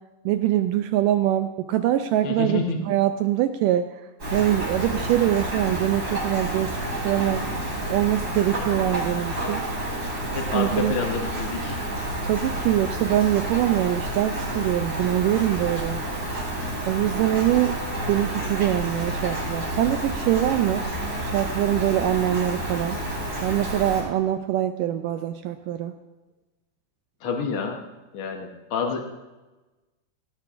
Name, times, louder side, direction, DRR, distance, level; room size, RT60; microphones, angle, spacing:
voice 1, 0.3-3.9 4.3-6.8 7.0-7.4 7.9-9.6 10.5-10.9 12.2-16.0 16.9-17.8 18.1-20.9 21.2-23.0 23.4-25.9, right 12 dB, 85° right, 8 dB, 1.9 m, -23 dB
voice 2, 2.2-2.9 10.3-11.8 27.2-27.8 28.1-29.0, left 4 dB, 75° left, 2 dB, 1.2 m, -28 dB
Rain, 4.2-24.0, right 1 dB, 25° right, 4.8 m, -29 dB
18.0 x 16.5 x 2.5 m, 1.2 s
omnidirectional pair, 4.3 m